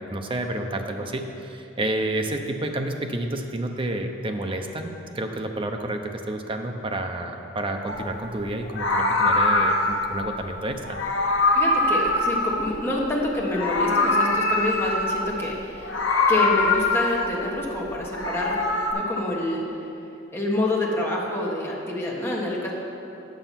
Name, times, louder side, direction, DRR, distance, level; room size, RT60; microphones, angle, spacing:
voice 1, 0.0-11.0, right 1 dB, 25° right, 4 dB, 0.7 m, -30 dB
Meow, 7.9-8.1 8.7-10.1 10.8-13.1 13.4-15.3 15.8-17.4 18.0-18.9, left 2 dB, 80° left, 1.2 m, -23 dB
voice 2, 11.5-15.9 16.3-18.6 18.9-19.6 20.3-22.7, left 1 dB, 15° left, -3 dB, 1.3 m, -27 dB
9.1 x 6.7 x 5.8 m, 2.8 s
head